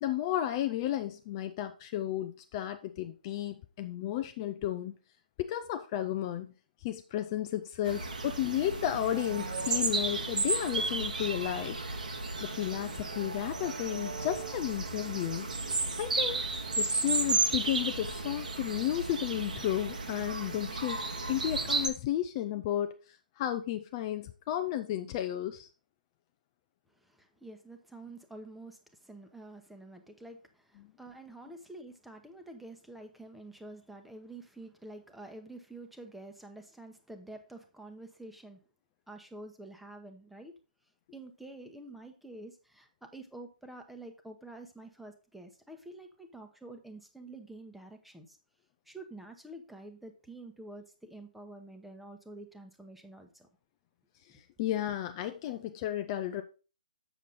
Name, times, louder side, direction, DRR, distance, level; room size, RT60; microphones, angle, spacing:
voice 1, 0.0-5.0 5.4-6.5 6.8-11.8 12.4-15.5 16.0-16.5 16.8-21.0 21.3-25.7 30.8-30.9 54.3-56.4, left 12 dB, 30° left, 0.5 m, -33 dB
sound 1, 7.8-21.9, right 3 dB, 70° right, 1.5 m, -33 dB
voice 2, 27.0-38.6 39.1-40.5 41.1-48.4 48.9-53.5, right 2 dB, ahead, 1.0 m, -48 dB
7.3 x 7.1 x 4.0 m
figure-of-eight pair, 130°, 4 cm